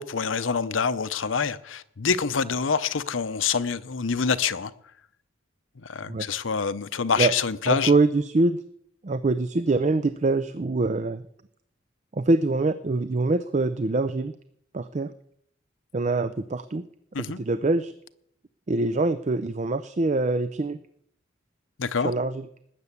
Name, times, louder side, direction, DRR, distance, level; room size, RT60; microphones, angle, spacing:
voice 1, 0.0-4.7 5.8-8.0 17.1-17.4 21.8-22.1, left 5 dB, 75° left, 0.8 m, -26 dB
voice 2, 7.7-8.6 9.0-11.2 12.1-14.3 14.7-15.1 15.9-16.8 17.2-17.9 18.7-20.8 22.0-22.5, right 3 dB, 35° right, 0.5 m, -24 dB
19.0 x 6.9 x 8.3 m
head